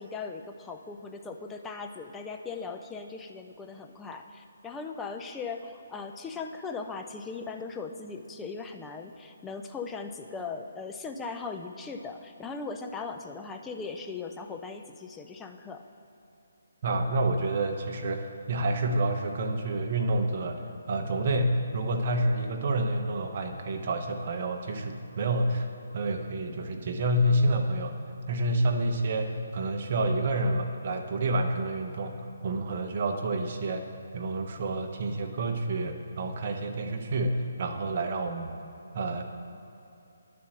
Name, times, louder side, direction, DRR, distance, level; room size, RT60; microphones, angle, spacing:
voice 1, 0.0-15.8, left 4 dB, 10° left, 4 dB, 0.5 m, -39 dB
voice 2, 16.8-20.6 20.9-25.7 25.9-27.9 28.3-33.8 34.1-38.6 38.9-39.2, right 1 dB, 45° right, 4 dB, 0.8 m, -28 dB
10.5 x 4.3 x 6.2 m, 2.8 s
figure-of-eight pair, 150°, 0 cm